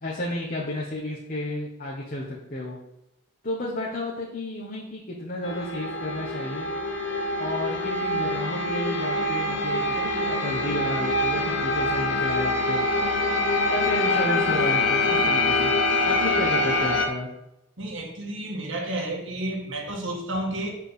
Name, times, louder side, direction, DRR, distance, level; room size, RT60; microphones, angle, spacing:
voice 1, 0.0-2.8 3.4-6.7 7.4-12.9 13.7-15.7 16.0-17.3, left 1 dB, 40° left, -3 dB, 1.4 m, -32 dB
sound 1, 5.4-17.1, left 2 dB, 65° left, 1.3 m, -25 dB
voice 2, 17.8-20.8, right 1 dB, 70° right, 0 dB, 1.8 m, -31 dB
7.3 x 4.9 x 7.0 m, 0.85 s
head